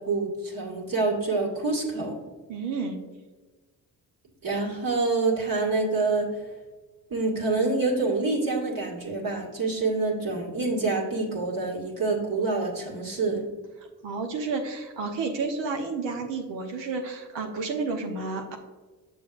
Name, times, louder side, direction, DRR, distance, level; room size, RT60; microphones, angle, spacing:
voice 1, 0.0-2.1 4.4-6.3 7.1-13.4, right 3 dB, 50° right, -1 dB, 1.9 m, -26 dB
voice 2, 2.5-3.0 14.0-18.6, right 4 dB, 75° right, 3 dB, 1.0 m, -31 dB
6.9 x 6.3 x 2.5 m, 1.3 s
hypercardioid pair, 40°, 44 cm